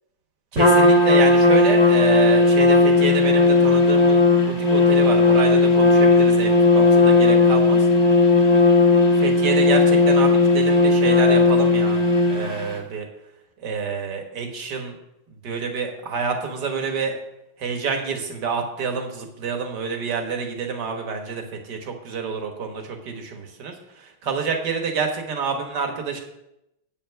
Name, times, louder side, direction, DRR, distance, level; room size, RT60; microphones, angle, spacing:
voice 1, 0.5-7.9 9.2-12.0 12.3-13.1 13.6-15.0 15.4-17.2 17.6-26.2, right 5 dB, 55° right, 3 dB, 1.9 m, -28 dB
Trumpet, 0.6-12.7, left 3 dB, 20° left, 1.3 m, -16 dB
8.4 x 5.7 x 8.0 m, 0.88 s
omnidirectional pair, 2.2 m